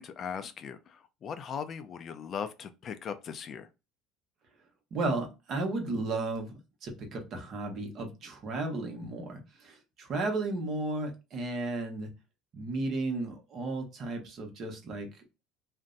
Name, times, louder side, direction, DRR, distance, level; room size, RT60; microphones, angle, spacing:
voice 1, 0.0-3.7, left 7 dB, 40° left, 0.4 m, -39 dB
voice 2, 4.9-12.1 12.5-15.1, right 2 dB, 50° right, 1.0 m, -34 dB
2.6 x 2.1 x 3.7 m
supercardioid pair, 105°, 0 cm